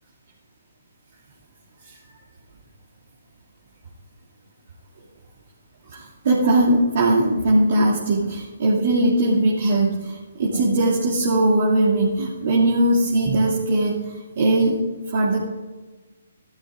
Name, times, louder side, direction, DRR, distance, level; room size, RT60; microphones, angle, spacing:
voice 1, 5.9-13.9 14.4-14.8 15.1-15.4, right 1 dB, 45° right, -7 dB, 2.3 m, -19 dB
17.0 x 13.0 x 2.5 m, 1.3 s
figure-of-eight pair, 130°, 0 cm